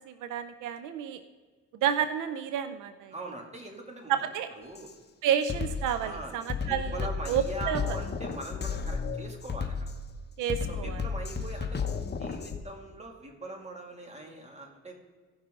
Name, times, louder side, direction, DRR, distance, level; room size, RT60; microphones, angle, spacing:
voice 1, 0.1-1.2 1.8-3.1 4.1-4.5 5.2-7.8 10.4-11.0, right 9 dB, 85° right, 11 dB, 0.6 m, -30 dB
voice 2, 3.1-4.3 4.6-4.9 5.5-5.6 6.0-9.9 10.7-11.9 12.2-14.9, right 2 dB, 20° right, 1 dB, 2.4 m, -42 dB
Drum kit, 4.7-4.9 5.4-12.6, left 5 dB, 35° left, 1.0 m, -33 dB
16.5 x 6.1 x 3.8 m, 1.4 s
cardioid pair, 90°, 30 cm